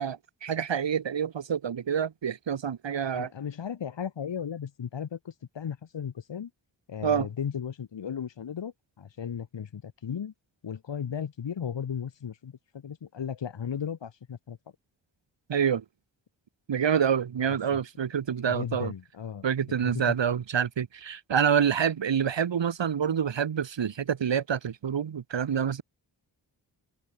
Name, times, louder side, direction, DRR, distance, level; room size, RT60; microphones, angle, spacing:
voice 1, 0.0-3.3 7.0-7.3 15.5-15.8 16.7-18.9 19.4-25.8, right 8 dB, 80° right, 3.4 m, -27 dB
voice 2, 3.1-6.5 6.9-10.3 10.6-14.6 17.7-17.8 18.4-19.5 19.8-20.2, left 8 dB, 75° left, 3.0 m, -35 dB
open air
cardioid pair, 55°, 44 cm